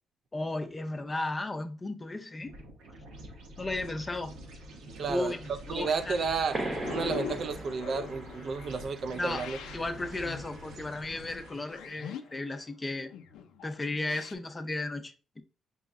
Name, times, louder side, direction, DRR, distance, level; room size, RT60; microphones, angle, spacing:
voice 1, 0.3-2.5 3.6-4.3 5.1-6.2 9.1-9.4 9.7-13.1 13.6-15.4, left 2 dB, 25° left, 0.5 m, -35 dB
sound 1, 2.4-11.9, right 1 dB, 80° right, 0.9 m, -47 dB
voice 2, 5.0-6.6 6.9-9.6, right 5 dB, 55° right, 0.4 m, -32 dB
sound 2, 5.9-14.3, left 8 dB, 85° left, 0.4 m, -44 dB
sound 3, 6.5-11.7, right 2 dB, 35° right, 0.8 m, -41 dB
5.3 x 2.0 x 3.5 m
cardioid pair, 90°, 0 cm